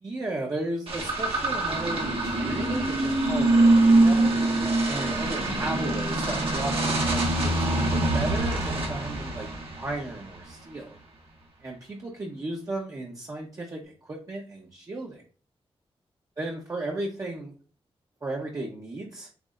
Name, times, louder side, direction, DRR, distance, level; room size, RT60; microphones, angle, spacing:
voice 1, 0.0-4.3 4.8-9.5 9.8-11.0 11.6-15.2 16.4-17.5 18.2-19.3, right 2 dB, 30° right, -3 dB, 0.9 m, -35 dB
sound 1, 0.9-10.4, right 2 dB, 65° right, 1.6 m, -24 dB
8.0 x 2.7 x 2.5 m, 0.38 s
wide cardioid pair, 175°, 11 cm